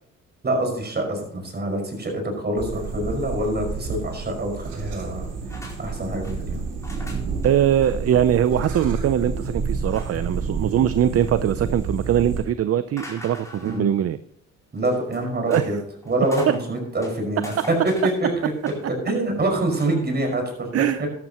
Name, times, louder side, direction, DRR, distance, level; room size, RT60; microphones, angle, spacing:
voice 1, 0.4-5.3 5.8-6.6 13.6-13.9 14.7-15.8 16.1-18.3 18.8-20.7 21.0-21.1, right 1 dB, 35° right, 2 dB, 5.4 m, -25 dB
sound 1, 2.6-12.4, right 4 dB, 85° right, 4.1 m, -30 dB
sound 2, 5.5-5.8 6.0-6.4 6.8-7.5 7.8-7.9 8.3-8.4 8.7-9.0 9.9-10.4 10.9-11.6 13.0-13.9 14.8-15.7 16.0-16.6 17.0-18.9 19.6-19.9, left 1 dB, 10° left, 4.4 m, -42 dB
voice 2, 7.4-14.2 15.5-15.7 16.5-16.6 20.7-21.0, right 10 dB, 50° right, 13 dB, 0.6 m, -21 dB
13.5 x 12.0 x 3.0 m, 0.73 s
cardioid pair, 90°, 30 cm